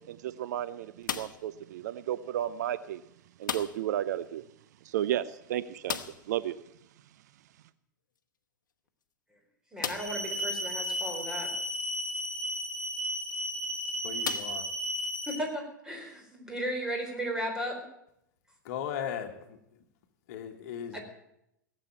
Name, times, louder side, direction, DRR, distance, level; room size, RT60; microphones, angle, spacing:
voice 1, 0.1-3.0 3.4-4.4 4.8-6.0 6.3-6.5, right 11 dB, 60° right, 15 dB, 0.6 m, -33 dB
sound 1, 1.0-1.6 3.4-4.0 4.2-4.3 4.7-4.8 5.8-6.4 8.2-8.3 8.9-9.0 9.8-10.3 11.0-11.1 13.1-13.3 14.2-15.1, left 7 dB, 70° left, 1.0 m, -36 dB
voice 2, 9.7-11.5 15.3-17.8 20.9-21.0, equal, 5° right, 2 dB, 4.3 m, -35 dB
sound 2, 9.9-15.3, equal, 10° left, 4.2 m, -34 dB
voice 3, 14.0-14.7 18.6-19.6 20.3-21.0, left 9 dB, 50° left, 6 dB, 1.6 m, -37 dB
17.0 x 7.7 x 8.6 m, 0.78 s
figure-of-eight pair, 95°, 11 cm